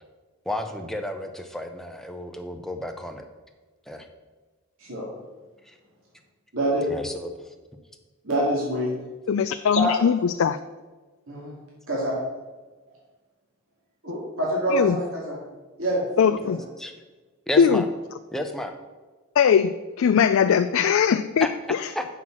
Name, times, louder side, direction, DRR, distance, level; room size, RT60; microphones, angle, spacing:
voice 1, 0.5-3.2 3.9-4.1 5.6-5.8 6.9-7.5 16.8-16.9 17.5-17.9 18.3-18.7 20.9-21.5 21.9-22.0, left 1 dB, ahead, 5 dB, 0.7 m, -32 dB
voice 2, 6.5-6.9 8.2-8.9 9.8-9.9 11.3-11.5 11.9-12.2 14.0-15.4 15.8-16.5, right 1 dB, 70° right, -5 dB, 2.3 m, -26 dB
voice 3, 9.3-10.6 14.7-15.0 16.2-16.6 17.6-17.8 19.4-21.9, left 7 dB, 70° left, 10 dB, 0.3 m, -20 dB
7.9 x 5.8 x 6.0 m, 1.3 s
head